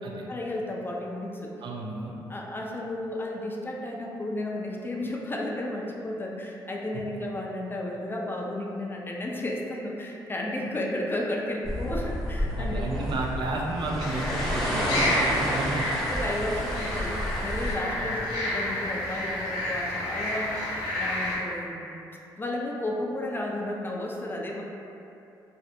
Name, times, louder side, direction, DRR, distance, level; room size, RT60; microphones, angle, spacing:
voice 1, 0.0-1.5 2.3-12.7 14.8-21.9 22.4-24.6, left 1 dB, 20° left, -2 dB, 0.4 m, -33 dB
voice 2, 1.6-2.2 12.6-15.9 18.0-18.2, right 2 dB, 50° right, -1 dB, 0.4 m, -32 dB
sound 1, 11.6-17.8, equal, ahead, 0.8 m, -30 dB
sound 2, 14.0-21.4, left 1 dB, 75° left, 0.5 m, -30 dB
2.5 x 2.0 x 2.5 m, 2.8 s
hypercardioid pair, 55°, 10 cm